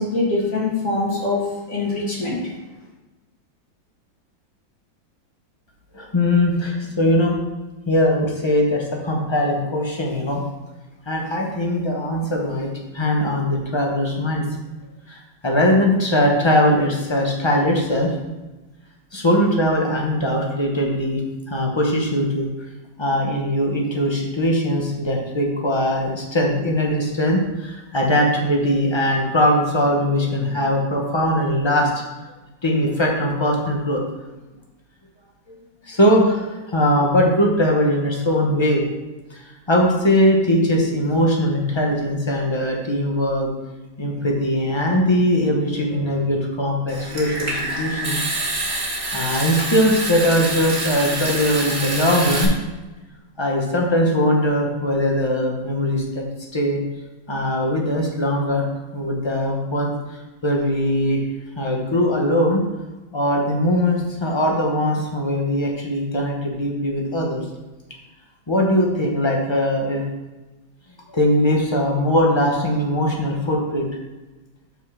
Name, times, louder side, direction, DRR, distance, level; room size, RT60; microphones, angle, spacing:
voice 1, 0.0-2.4, left 2 dB, 45° left, -5 dB, 2.0 m, -23 dB
voice 2, 5.9-7.4 7.9-10.4 11.1-14.5 15.1-18.1 19.1-21.2 21.5-22.5 23.0-31.9 32.6-34.0 35.5-35.6 35.9-38.8 39.3-43.5 44.0-48.2 48.7-48.8 49.1-52.5 53.4-56.2 56.5-56.8 57.3-58.6 58.9-59.9 60.4-61.2 61.6-62.6 63.1-67.4 68.5-70.1 71.1-73.9, left 1 dB, 25° left, -1 dB, 0.6 m, -20 dB
Water tap faucet / Sink (filling or washing) / Trickle dribble, 46.9-52.4, right 2 dB, 35° right, 1.6 m, -26 dB
5.6 x 4.5 x 6.1 m, 1.1 s
omnidirectional pair, 2.1 m